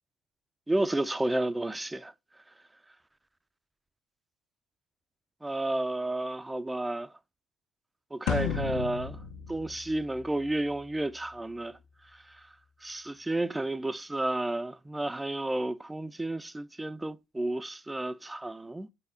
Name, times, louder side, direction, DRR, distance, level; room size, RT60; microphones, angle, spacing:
voice 1, 0.7-2.1 5.4-7.1 8.1-9.2 9.5-11.8 12.8-18.9, right 2 dB, 10° right, 0.4 m, -31 dB
sound 1, 8.3-10.7, left 7 dB, 75° left, 0.9 m, -33 dB
4.8 x 4.1 x 4.9 m
supercardioid pair, 85°, 0 cm